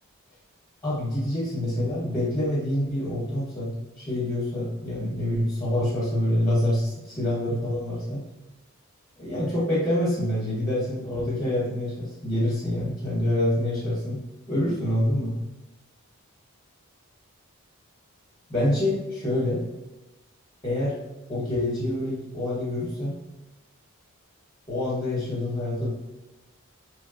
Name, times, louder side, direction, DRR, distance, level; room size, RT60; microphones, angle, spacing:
voice 1, 0.8-8.2 9.2-14.2 14.5-15.3 18.5-19.6 20.6-21.0 21.3-23.2 24.7-25.9, left 1 dB, 15° left, -10 dB, 0.9 m, -26 dB
3.1 x 2.2 x 2.3 m, 1.0 s
head